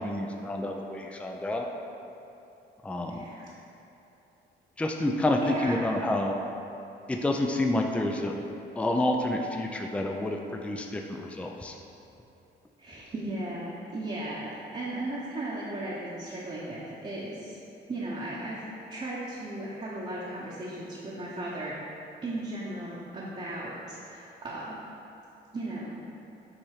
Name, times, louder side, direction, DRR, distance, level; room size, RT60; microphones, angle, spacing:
voice 1, 0.0-1.7 2.8-3.2 4.8-6.4 7.1-8.3 8.8-11.8, left 1 dB, 5° left, 2 dB, 0.4 m, -29 dB
voice 2, 3.1-3.5 5.4-5.9 12.8-17.6 17.9-21.8 22.2-24.8 25.5-26.0, right 1 dB, 30° right, -7 dB, 1.0 m, -36 dB
7.3 x 3.0 x 4.9 m, 2.8 s
cardioid pair, 90°, 20 cm